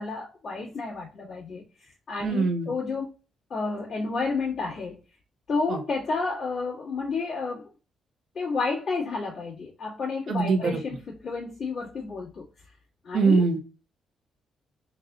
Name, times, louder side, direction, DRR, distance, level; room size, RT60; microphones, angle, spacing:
voice 1, 0.0-1.6 2.1-3.1 3.5-5.0 5.5-7.7 8.3-12.4 13.0-13.4, left 4 dB, 55° left, 2.0 m, -31 dB
voice 2, 2.2-2.7 5.7-5.8 10.3-10.8 13.1-13.6, right 4 dB, 60° right, 0.9 m, -23 dB
4.0 x 2.4 x 3.9 m
cardioid pair, 90°, 0 cm